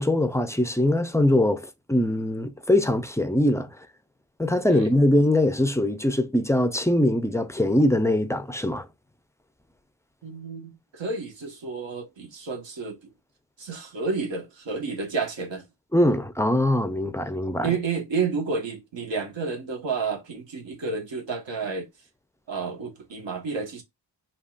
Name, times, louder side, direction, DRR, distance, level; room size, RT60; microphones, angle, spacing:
voice 1, 0.0-3.7 4.4-8.9 15.9-17.7, left 1 dB, 5° left, 0.3 m, -22 dB
voice 2, 10.2-13.0 13.6-15.6 17.6-21.9 22.5-23.8, right 4 dB, 75° right, 1.4 m, -30 dB
5.1 x 2.8 x 2.4 m
wide cardioid pair, 150°, 44 cm